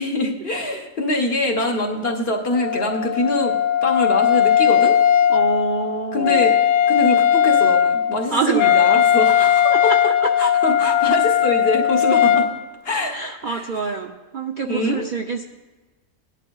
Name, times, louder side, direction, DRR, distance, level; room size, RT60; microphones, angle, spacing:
voice 1, 0.0-3.6 3.8-5.0 6.1-6.6 6.9-9.9 10.4-12.5 12.8-13.2 13.5-13.7 14.6-15.0, left 2 dB, 50° left, 1 dB, 1.3 m, -23 dB
Wind instrument woodwind instrument, 2.5-12.5, left 9 dB, 75° left, 0.9 m, -18 dB
voice 2, 5.3-6.6 8.3-9.0 9.7-10.3 13.1-15.4, right 5 dB, 55° right, 3 dB, 0.5 m, -26 dB
18.0 x 10.5 x 2.3 m, 1.2 s
omnidirectional pair, 1.4 m